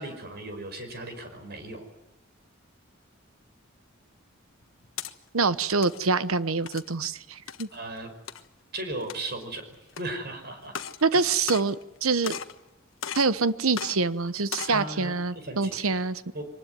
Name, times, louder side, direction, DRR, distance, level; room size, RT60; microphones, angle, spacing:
voice 1, 0.0-1.9 7.7-8.1 8.7-10.7 11.1-11.2 14.7-16.0 16.3-16.5, right 2 dB, 50° right, 7 dB, 5.3 m, -37 dB
sound 1, 4.6-5.1 5.7-6.0 6.7-6.9 7.5-7.7 8.3-8.4 9.0-9.4 9.9-10.0 10.6-11.0 11.3-12.0 12.2-12.6 13.0-13.3 13.7-13.9 14.4-14.8, left 7 dB, 70° left, 1.3 m, -36 dB
voice 2, 5.3-7.7 11.0-12.3 13.1-16.2, right 4 dB, 90° right, 14 dB, 1.1 m, -25 dB
24.5 x 20.0 x 9.4 m, 0.93 s
head